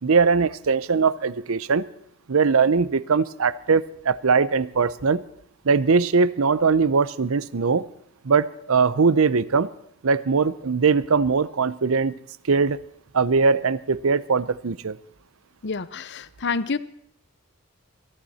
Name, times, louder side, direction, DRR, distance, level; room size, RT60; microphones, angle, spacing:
voice 1, 0.0-1.8 2.3-5.2 5.6-7.8 8.2-9.7 10.0-12.1 12.5-12.8 13.1-15.0, right 5 dB, 75° right, 17 dB, 0.7 m, -21 dB
voice 2, 15.6-16.8, left 4 dB, 55° left, 15 dB, 0.8 m, -28 dB
23.0 x 14.5 x 4.3 m, 0.71 s
head